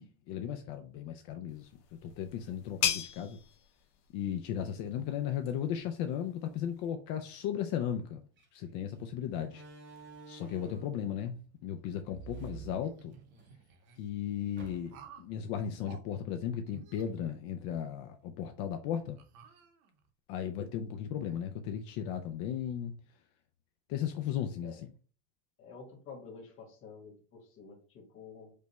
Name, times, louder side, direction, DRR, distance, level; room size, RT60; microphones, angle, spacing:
voice 1, 0.0-1.7 2.0-3.4 4.1-8.2 8.5-9.6 10.3-13.2 14.0-19.2 20.3-22.9 23.9-24.8, left 9 dB, 55° left, 0.5 m, -36 dB
sound 1, 1.5-6.9, left 9 dB, 75° left, 1.2 m, -39 dB
Slam, 8.4-8.6 9.4-11.0 12.0-13.5 13.8-13.9 14.6-15.2, right 6 dB, 25° right, 0.6 m, -49 dB
sound 2, 12.5-14.0 14.9-15.3 15.8-16.0 16.6-17.9 18.4-18.5 19.2-20.1, right 5 dB, 65° right, 1.0 m, -53 dB
voice 2, 25.6-28.5, left 5 dB, 25° left, 1.2 m, -50 dB
5.1 x 2.2 x 4.1 m
cardioid pair, 175°, 47 cm